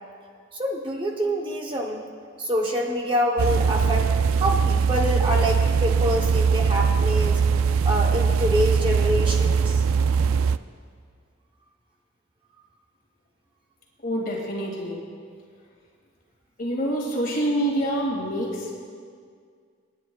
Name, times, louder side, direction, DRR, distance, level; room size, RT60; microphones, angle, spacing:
voice 1, 0.5-2.1 2.4-4.1 4.4-7.4 7.8-9.8, equal, 25° right, 1 dB, 0.8 m, -26 dB
sound 1, 3.4-10.6, right 6 dB, 85° right, 0.3 m, -21 dB
voice 2, 14.0-15.0 16.6-18.7, right 1 dB, 45° left, -2 dB, 2.1 m, -26 dB
27.5 x 9.5 x 2.3 m, 2.1 s
head